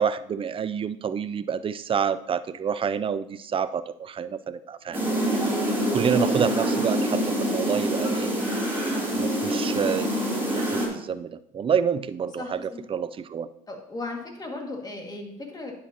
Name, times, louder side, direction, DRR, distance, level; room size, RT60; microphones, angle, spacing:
voice 1, 0.0-5.3 5.9-8.3 9.2-10.1 10.5-12.6 12.9-13.5, right 7 dB, 35° right, 14 dB, 0.5 m, -28 dB
sound 1, 4.9-10.9, right 1 dB, 15° right, 3.2 m, -25 dB
voice 2, 12.4-12.8 13.7-15.7, left 2 dB, 25° left, 1 dB, 2.1 m, -36 dB
10.0 x 7.2 x 2.9 m, 0.76 s
supercardioid pair, 70°, 17 cm